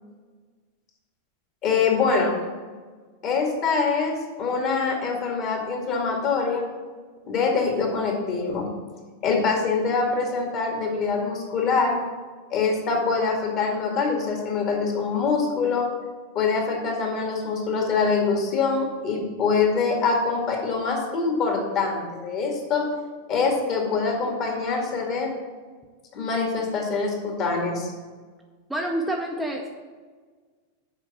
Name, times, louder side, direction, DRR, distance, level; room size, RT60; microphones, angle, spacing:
voice 1, 1.6-2.3 3.2-6.6 7.3-8.7 9.2-12.0 12.5-15.9 16.3-22.8 23.3-25.3 26.1-27.9, left 4 dB, 35° left, 1 dB, 2.1 m, -24 dB
voice 2, 28.7-29.7, right 1 dB, 5° right, 0 dB, 0.8 m, -27 dB
7.3 x 5.0 x 6.8 m, 1.5 s
figure-of-eight pair, 90°, 0 cm